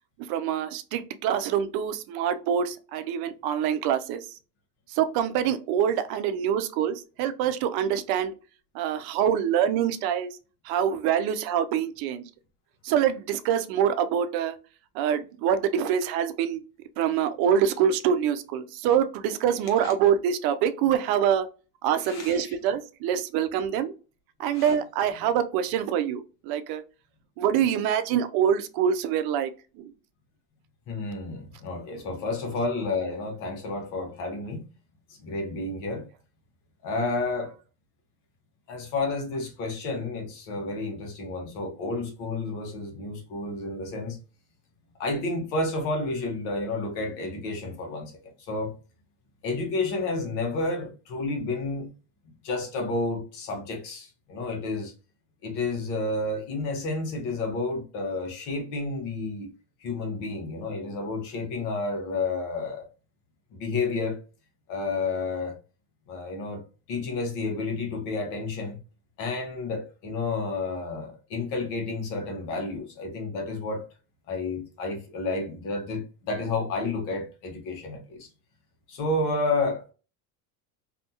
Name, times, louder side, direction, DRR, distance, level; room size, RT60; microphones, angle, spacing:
voice 1, 0.3-4.2 4.9-8.3 8.7-10.3 10.6-12.2 12.8-14.6 14.9-16.6 17.0-21.5 21.8-23.9 24.4-26.8 27.4-29.5 29.8-29.9, right 9 dB, 60° right, 0.5 m, -25 dB
voice 2, 22.0-22.5 24.5-24.7 30.9-34.6 35.2-36.1 36.8-37.5 38.7-44.2 45.0-48.7 49.4-51.9 52.4-54.9 55.4-59.5 59.8-62.9 63.5-64.2 64.7-65.6 66.1-66.6 66.9-68.8 69.2-73.8 74.3-78.3 78.9-79.9, left 3 dB, 70° left, 1.2 m, -30 dB
2.7 x 2.2 x 2.7 m
supercardioid pair, 95°, 43 cm